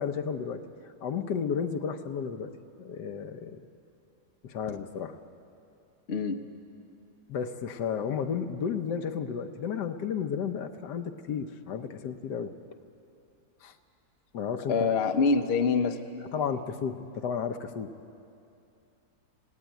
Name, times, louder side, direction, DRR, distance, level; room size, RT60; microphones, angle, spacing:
voice 1, 0.0-2.5 2.8-3.7 4.4-5.2 7.3-12.5 13.6-13.8 14.3-14.9 16.3-17.9, left 7 dB, 70° left, 8 dB, 1.4 m, -33 dB
voice 2, 6.1-6.4 14.7-16.0, left 4 dB, 45° left, 7 dB, 0.9 m, -25 dB
18.5 x 17.0 x 9.2 m, 2.6 s
omnidirectional pair, 2.0 m